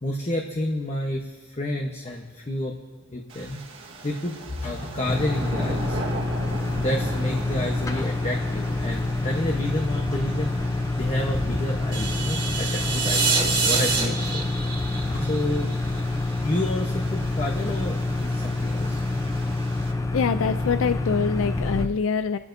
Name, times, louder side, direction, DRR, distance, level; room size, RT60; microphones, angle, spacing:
voice 1, 0.0-2.8 3.1-3.6 4.0-6.0 6.8-10.5 10.9-14.4 14.9-15.7 16.4-19.0, left 1 dB, 30° left, 0 dB, 1.0 m, -30 dB
sound 1, 3.3-19.9, right 2 dB, 70° right, 1.6 m, -39 dB
sound 2, 5.1-21.9, left 2 dB, 15° left, 0.6 m, -27 dB
sound 3, 11.9-16.0, right 4 dB, 25° right, 2.0 m, -26 dB
voice 2, 20.1-22.4, left 6 dB, 75° left, 11 dB, 0.4 m, -24 dB
28.0 x 12.5 x 2.7 m, 1.4 s
head